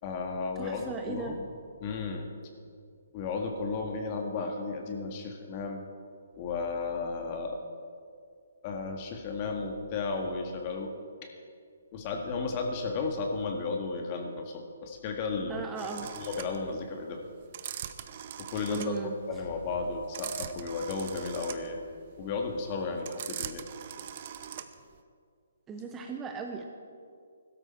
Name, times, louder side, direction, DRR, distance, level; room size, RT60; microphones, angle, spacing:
voice 1, 0.0-1.4 1.8-2.3 3.1-5.8 6.3-7.6 8.6-11.0 11.2-11.3 11.9-15.6 16.2-17.2 18.4-18.9 19.3-21.9 22.2-23.7, left 4 dB, 30° left, 3 dB, 1.8 m, -34 dB
voice 2, 0.6-1.3 15.5-16.1 18.7-19.1 25.7-26.7, right 5 dB, 15° right, 3 dB, 0.9 m, -37 dB
sound 1, 15.8-25.0, right 9 dB, 40° right, 0.7 m, -41 dB
16.0 x 13.0 x 4.5 m, 2.3 s
hypercardioid pair, 155°, 0 cm